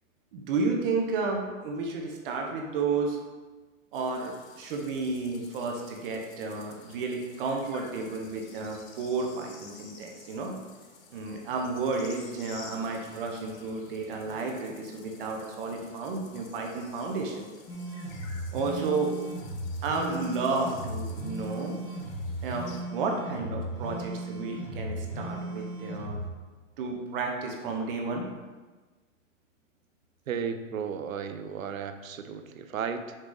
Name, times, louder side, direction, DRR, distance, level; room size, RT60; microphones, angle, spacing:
voice 1, 0.3-3.2 3.9-10.5 11.1-17.5 18.5-19.2 19.8-21.8 22.4-26.2 26.8-28.2, right 4 dB, 45° right, 1 dB, 1.0 m, -32 dB
sound 1, 3.9-22.8, left 4 dB, 85° left, 1.4 m, -52 dB
sound 2, 17.7-26.2, right 1 dB, 10° left, 2.1 m, -36 dB
voice 2, 30.3-33.2, right 7 dB, 90° right, 9 dB, 0.8 m, -34 dB
6.4 x 4.8 x 4.0 m, 1.3 s
hypercardioid pair, 150°, 40 cm